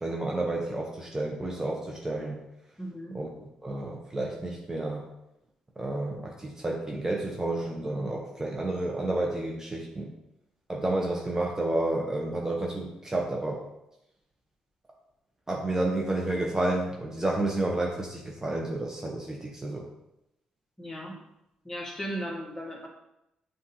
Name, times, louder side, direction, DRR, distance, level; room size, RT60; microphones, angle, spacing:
voice 1, 0.0-2.4 3.1-3.3 3.6-5.0 5.8-10.1 10.7-13.6 15.5-19.9, right 2 dB, 20° right, -1 dB, 0.9 m, -30 dB
voice 2, 2.8-3.2 20.8-21.2 21.6-22.9, equal, 15° left, -2 dB, 1.6 m, -36 dB
7.2 x 2.6 x 2.8 m, 0.87 s
supercardioid pair, 55°, 3 cm